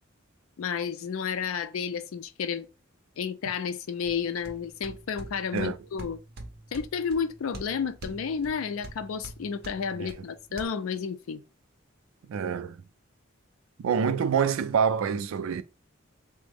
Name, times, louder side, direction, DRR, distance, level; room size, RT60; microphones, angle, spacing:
voice 1, 0.6-2.7 3.2-6.2 6.7-11.4, left 6 dB, 85° left, 0.4 m, -31 dB
sound 1, 4.1-10.7, right 1 dB, 50° right, 0.6 m, -45 dB
voice 2, 12.3-12.8 13.8-15.6, right 7 dB, 85° right, 0.3 m, -26 dB
3.5 x 2.0 x 3.4 m
head